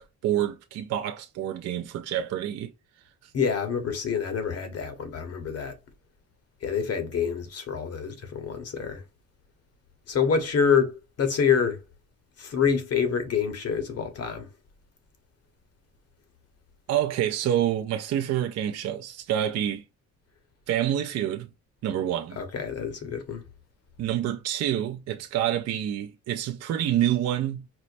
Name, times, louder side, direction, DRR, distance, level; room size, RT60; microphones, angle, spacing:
voice 1, 0.2-2.7 3.2-3.3 16.9-19.8 20.7-21.5 21.8-22.4 24.0-27.6, right 11 dB, 55° right, 0.4 m, -27 dB
voice 2, 3.3-5.7 6.6-9.0 10.1-10.9 11.2-11.8 12.4-14.5 22.4-23.4, left 6 dB, 55° left, 1.0 m, -26 dB
4.4 x 2.0 x 2.5 m
cardioid pair, 90°, 30 cm